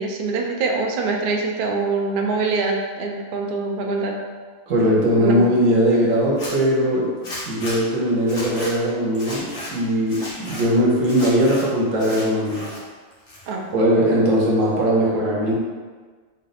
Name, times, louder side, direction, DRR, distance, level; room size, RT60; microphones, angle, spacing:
voice 1, 0.0-4.2 5.2-5.5 13.5-13.7, right 3 dB, 60° right, 1 dB, 0.5 m, -24 dB
voice 2, 4.7-12.7 13.7-15.6, equal, 80° right, -3 dB, 1.3 m, -20 dB
Zipper (clothing), 6.2-6.5 7.2-7.8 8.2-8.7 9.1-9.7 10.1-10.6 11.0-11.6 12.0-12.8 13.1-13.7, left 1 dB, 45° left, 1.4 m, -34 dB
4.1 x 2.6 x 4.0 m, 1.5 s
omnidirectional pair, 1.3 m